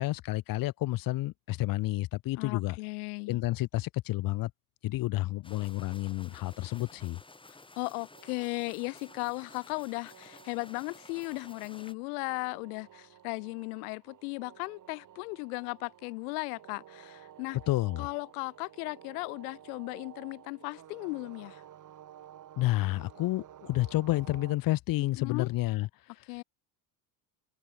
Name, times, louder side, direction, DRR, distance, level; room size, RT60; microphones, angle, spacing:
voice 1, 0.0-2.8 3.3-4.5 4.8-7.2 17.7-18.1 22.6-25.9, left 17 dB, 50° left, 0.9 m, -30 dB
voice 2, 2.4-3.4 7.8-17.6 18.0-21.6 25.0-25.5 26.3-26.4, left 31 dB, 90° left, 0.6 m, -37 dB
sound 1, 5.4-11.9, left 3 dB, 10° left, 4.0 m, -54 dB
sound 2, 8.1-24.6, right 11 dB, 45° right, 3.1 m, -54 dB
supercardioid pair, 110°, 43 cm